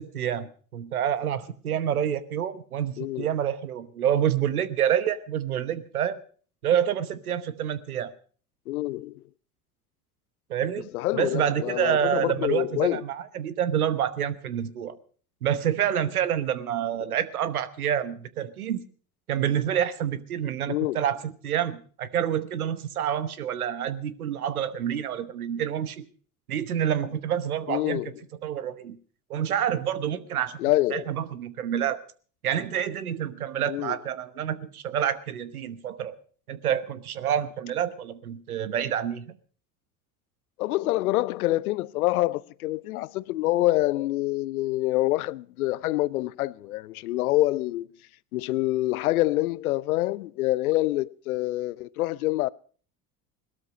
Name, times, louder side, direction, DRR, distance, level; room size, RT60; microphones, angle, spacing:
voice 1, 0.0-6.2 6.6-8.1 10.5-14.9 15.4-18.8 19.3-26.0 26.5-28.0 28.4-29.0 29.3-30.6 30.9-32.0 32.4-36.1 36.5-39.3, right 9 dB, 90° right, 1.1 m, -28 dB
voice 2, 3.0-3.3 8.7-9.2 10.9-13.0 20.7-21.0 27.7-28.1 30.6-31.1 33.7-34.0 40.6-47.9 48.3-52.5, left 17 dB, 80° left, 0.6 m, -26 dB
17.5 x 13.0 x 5.1 m
hypercardioid pair, 75°, 43 cm